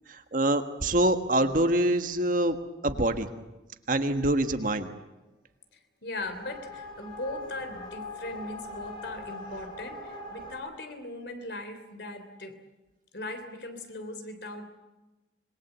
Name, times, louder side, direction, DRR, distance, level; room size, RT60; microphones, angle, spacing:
voice 1, 0.1-2.6 2.8-3.3 3.9-4.9, right 1 dB, 45° right, 7 dB, 1.6 m, -25 dB
voice 2, 6.0-12.6 13.1-14.7, left 2 dB, 65° left, 9 dB, 3.3 m, -39 dB
sound 1, 6.2-10.5, left 2 dB, 25° left, 5.7 m, -41 dB
26.5 x 21.5 x 8.2 m, 1.1 s
head